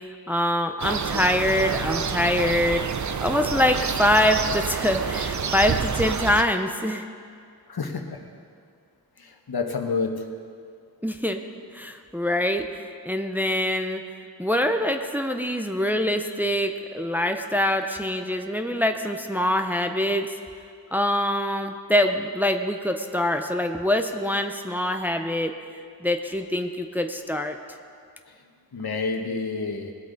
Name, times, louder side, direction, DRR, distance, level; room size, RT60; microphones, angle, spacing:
voice 1, 0.3-7.0 11.0-11.4 11.7-12.7 13.1-14.0 14.4-20.3 20.9-25.5 26.0-27.6, left 1 dB, 5° right, 5 dB, 0.6 m, -24 dB
sound 1, 0.8-6.4, right 6 dB, 50° right, 0.6 m, -28 dB
voice 2, 7.7-8.2 9.2-10.2 28.7-29.9, left 4 dB, 75° left, 3 dB, 1.3 m, -29 dB
20.0 x 8.3 x 4.0 m, 2.2 s
wide cardioid pair, 70°, 38 cm